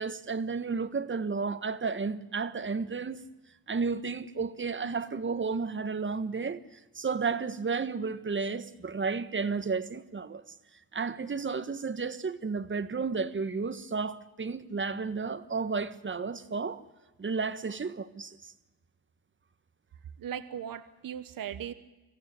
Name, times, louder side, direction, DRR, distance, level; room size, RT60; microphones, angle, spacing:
voice 1, 0.0-3.2 3.7-6.6 6.9-10.4 10.9-16.8 17.2-18.5, right 4 dB, 30° right, 1.4 m, -32 dB
voice 2, 20.2-21.7, right 9 dB, 55° right, 1.3 m, -38 dB
25.5 x 14.5 x 10.0 m
cardioid pair, 90°, 39 cm